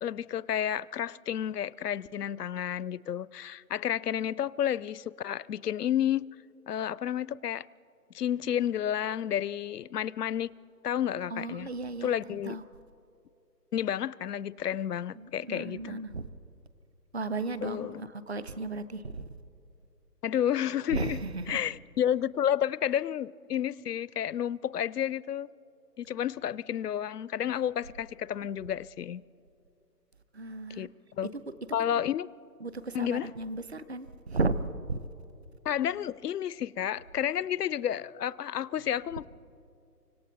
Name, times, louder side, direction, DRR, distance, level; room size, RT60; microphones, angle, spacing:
voice 1, 0.0-6.3 6.7-7.7 8.1-10.5 10.8-11.7 12.0-12.6 13.7-16.0 17.6-18.0 20.2-21.2 21.5-25.5 26.0-29.2 30.8-30.9 31.2-31.3 31.7-32.3 32.9-33.3 35.6-39.3, left 10 dB, 70° left, 0.6 m, -31 dB
voice 2, 11.3-12.6 15.1-16.3 17.1-19.3 20.9-21.6 30.3-30.9 31.2-31.4 31.8-32.0 32.6-34.6 34.9-35.0, right 3 dB, 40° right, 0.7 m, -35 dB
29.5 x 25.0 x 4.0 m
hypercardioid pair, 175°, 49 cm